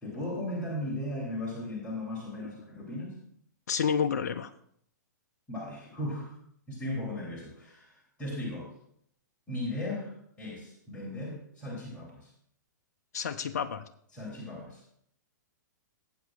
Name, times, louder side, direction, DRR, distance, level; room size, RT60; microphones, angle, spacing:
voice 1, 0.0-3.2 5.5-6.3 6.7-8.7 9.5-12.3 14.1-14.8, left 1 dB, 10° left, -6 dB, 3.1 m, -37 dB
voice 2, 3.7-4.5 13.1-13.8, left 7 dB, 60° left, 8 dB, 0.6 m, -29 dB
17.5 x 8.1 x 2.4 m, 0.68 s
figure-of-eight pair, 110°, 10 cm